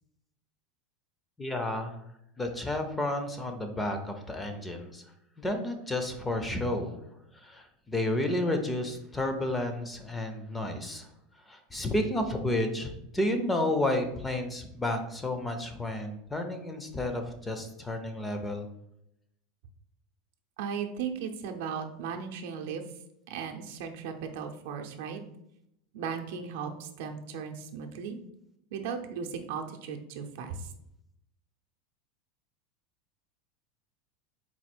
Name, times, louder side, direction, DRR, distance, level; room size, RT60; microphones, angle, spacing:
voice 1, 1.4-2.0 2.4-5.0 5.4-7.0 7.3-11.1 11.5-18.7, left 1 dB, 10° left, 6 dB, 0.4 m, -31 dB
voice 2, 20.6-22.8 23.3-25.2 25.9-28.2 28.7-30.7, right 6 dB, 70° right, 4 dB, 0.6 m, -36 dB
4.2 x 2.3 x 4.3 m, 0.80 s
supercardioid pair, 160°, 0 cm